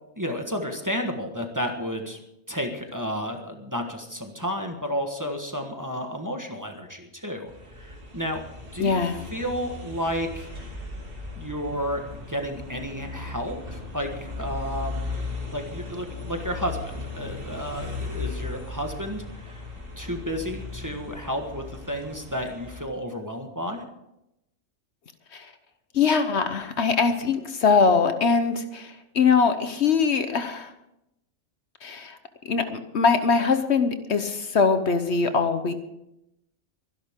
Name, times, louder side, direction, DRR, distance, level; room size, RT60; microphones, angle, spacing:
voice 1, 0.2-2.2 2.5-9.1 9.3-10.5 11.3-15.1 15.5-19.6 20.0-23.8, equal, 15° right, 3 dB, 1.4 m, -32 dB
sound 1, 7.5-22.8, left 3 dB, 45° right, 2.8 m, -37 dB
voice 2, 8.8-9.2 25.3-25.5 25.9-30.7 31.8-32.2 32.4-35.7, left 5 dB, 60° left, 9 dB, 1.2 m, -22 dB
24.0 x 11.0 x 3.7 m, 0.86 s
omnidirectional pair, 1.3 m